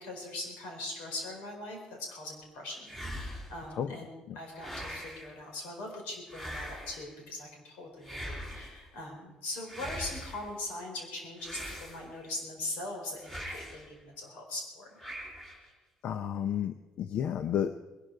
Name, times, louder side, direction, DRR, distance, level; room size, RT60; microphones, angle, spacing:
voice 1, 0.0-15.0, left 2 dB, 85° left, 2 dB, 4.4 m, -41 dB
sound 1, 2.9-3.7 4.6-5.3 6.3-7.1 8.0-8.8 9.7-10.5 11.4-12.3 13.2-13.9 15.0-15.7, equal, 15° left, 4.0 m, -41 dB
voice 2, 16.0-17.7, left 9 dB, 60° left, 10 dB, 0.6 m, -32 dB
20.5 x 12.0 x 4.7 m, 1.1 s
cardioid pair, 100°, 2 cm